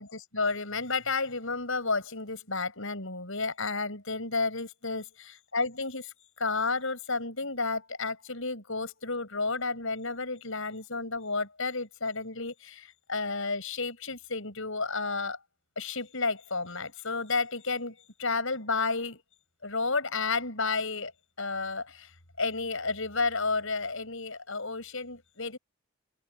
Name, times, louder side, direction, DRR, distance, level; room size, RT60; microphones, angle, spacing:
voice 1, 0.0-15.4 15.8-19.2 19.6-21.1 21.4-22.1 22.4-25.6, left 3 dB, 65° left, 6.7 m, -32 dB
open air
head